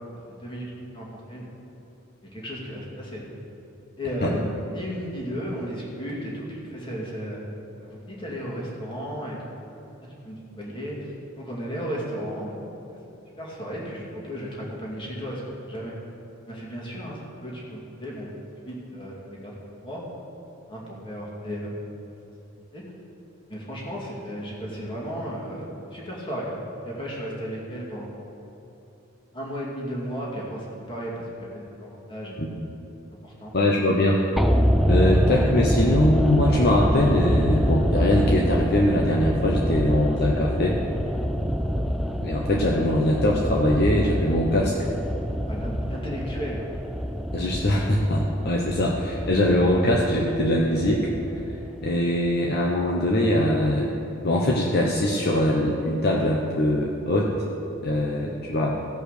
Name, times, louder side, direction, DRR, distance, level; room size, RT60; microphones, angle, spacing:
voice 1, 0.3-0.7 0.9-1.5 2.3-3.2 4.0-7.5 7.8-9.6 10.2-11.0 11.4-12.5 13.4-15.9 16.5-18.3 18.6-20.0 20.7-21.7 22.7-22.8 23.5-25.7 25.9-28.3 29.3-32.3 33.2-33.5 45.5-46.6, equal, 25° left, -4 dB, 2.3 m, -34 dB
voice 2, 33.5-34.2 34.9-40.8 42.2-44.9 47.3-51.1 51.5-53.9 54.2-57.3 57.8-58.8, left 1 dB, 50° left, -2 dB, 0.8 m, -22 dB
sound 1, 34.4-52.6 52.8-52.9, equal, ahead, 0.4 m, -26 dB
16.0 x 5.4 x 6.6 m, 2.9 s
head